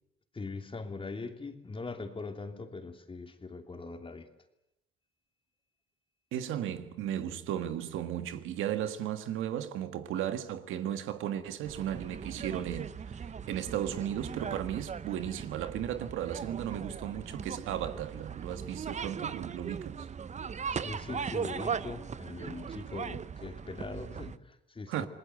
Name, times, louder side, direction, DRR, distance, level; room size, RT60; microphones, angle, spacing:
voice 1, 0.3-4.3 20.7-25.1, left 3 dB, 25° left, 3.0 m, -41 dB
voice 2, 6.3-20.1 24.9-25.1, right 10 dB, 90° right, 1.7 m, -35 dB
sound 1, 11.6-24.4, right 6 dB, 35° right, 0.9 m, -39 dB
28.0 x 20.0 x 7.9 m
cardioid pair, 90°, 20 cm